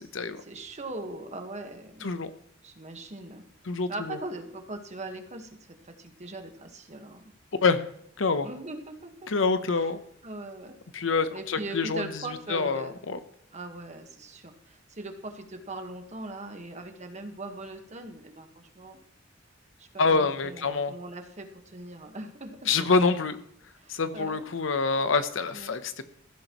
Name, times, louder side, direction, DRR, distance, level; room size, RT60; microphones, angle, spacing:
voice 1, 0.4-2.1 2.6-3.4 3.9-5.6 5.8-7.3 8.4-9.3 9.7-9.9 10.2-10.8 11.3-13.0 13.5-19.0 19.8-22.7 23.8-24.4 25.5-25.8, right 2 dB, 35° right, 5 dB, 1.4 m, -40 dB
voice 2, 3.7-4.2 7.6-7.8 8.2-8.5 9.3-10.0 10.9-12.1 12.5-13.2 20.0-20.9 22.7-23.4 23.9-26.1, left 4 dB, 80° left, 11 dB, 0.9 m, -26 dB
15.0 x 13.0 x 3.1 m, 0.71 s
head